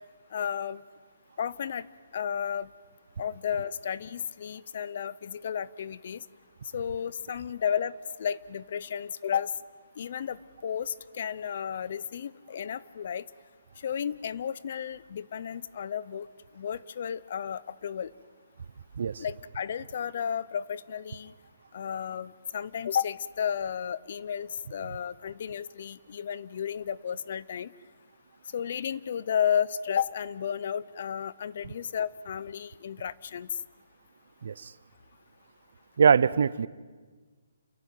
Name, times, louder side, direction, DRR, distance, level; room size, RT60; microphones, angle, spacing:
voice 1, 0.3-0.8 1.4-1.9 2.1-2.7 3.2-6.2 6.7-7.9 8.2-9.5 10.0-13.2 13.8-16.3 16.5-18.1 19.2-21.3 21.7-27.7 28.5-33.5, left 8 dB, 45° left, 19 dB, 0.6 m, -33 dB
voice 2, 36.0-36.7, right 6 dB, 60° right, 19 dB, 0.8 m, -22 dB
28.5 x 15.5 x 9.2 m, 1.4 s
hypercardioid pair, 170°, 0 cm